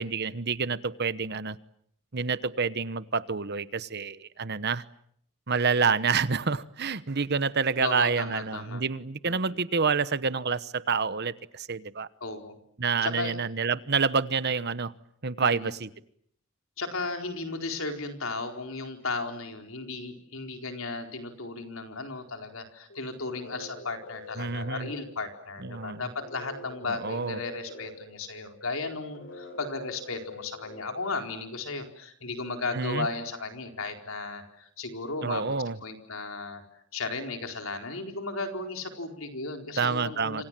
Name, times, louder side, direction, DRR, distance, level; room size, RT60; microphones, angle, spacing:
voice 1, 0.0-1.6 2.1-4.8 5.5-12.1 12.8-14.9 15.2-15.9 24.4-24.9 25.6-26.0 26.9-27.4 32.7-33.1 35.2-35.8 39.8-40.4, right 5 dB, 50° right, 15 dB, 1.1 m, -28 dB
voice 2, 7.8-8.8 9.2-9.6 12.2-12.6 13.0-13.3 15.4-15.7 16.8-35.5 35.8-36.6 36.9-40.4, left 3 dB, 80° left, 5 dB, 4.4 m, -35 dB
sound 1, 22.9-31.6, left 2 dB, 65° left, 5.6 m, -46 dB
28.0 x 26.5 x 7.6 m, 0.69 s
head